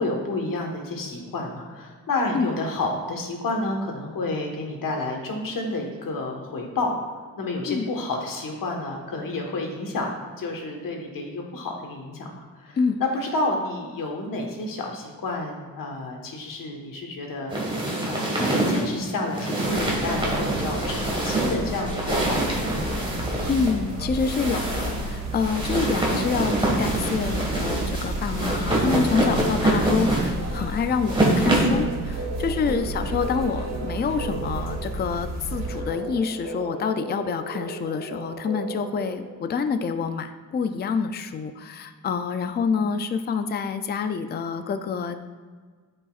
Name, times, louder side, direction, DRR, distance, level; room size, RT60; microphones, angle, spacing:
voice 1, 0.0-6.9 7.4-17.7 18.1-22.8 32.6-32.9, left 2 dB, 70° left, 1 dB, 1.4 m, -30 dB
sound 1, 17.5-31.8, right 1 dB, 15° right, 1.6 m, -25 dB
sound 2, 19.7-35.8, right 1 dB, 50° right, 1.3 m, -32 dB
voice 2, 23.5-45.2, left 5 dB, 30° left, 9 dB, 0.4 m, -27 dB
sound 3, 31.2-39.6, right 2 dB, 70° right, 1.4 m, -36 dB
13.0 x 5.4 x 2.4 m, 1.5 s
wide cardioid pair, 175°, 34 cm